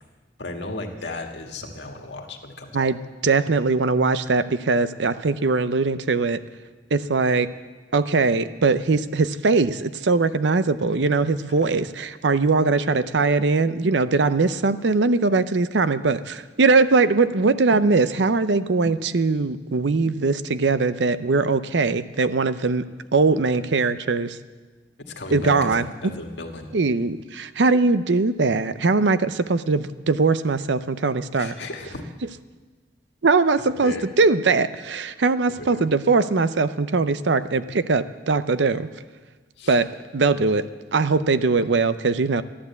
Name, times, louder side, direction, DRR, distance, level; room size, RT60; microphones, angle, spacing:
voice 1, 0.4-2.9 11.4-11.8 25.0-26.7 31.3-32.1 33.8-34.0 35.1-35.2 35.5-35.9 39.6-39.8 41.4-41.5, left 2 dB, 75° left, 3 dB, 1.7 m, -35 dB
voice 2, 2.7-6.4 6.9-7.5 7.9-22.8 23.1-24.4 25.3-25.9 26.7-31.5 33.2-38.9 39.7-39.9 40.1-40.6 40.9-42.4, right 3 dB, 75° right, 13 dB, 0.6 m, -21 dB
14.0 x 11.5 x 8.2 m, 1.3 s
head